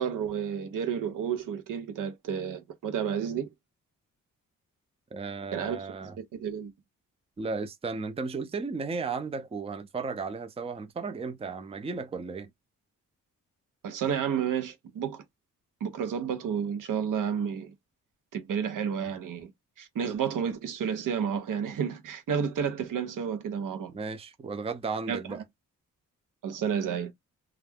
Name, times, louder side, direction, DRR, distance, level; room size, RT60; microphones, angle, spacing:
voice 1, 0.0-3.5 5.5-6.7 13.8-15.2 15.8-17.7 18.3-19.5 19.8-23.9 25.1-25.2 26.4-27.1, right 7 dB, 80° right, 0.8 m, -31 dB
voice 2, 5.1-6.2 7.4-12.5 23.9-25.4, right 4 dB, 20° right, 0.5 m, -34 dB
2.4 x 2.2 x 3.3 m
cardioid pair, 75°, 32 cm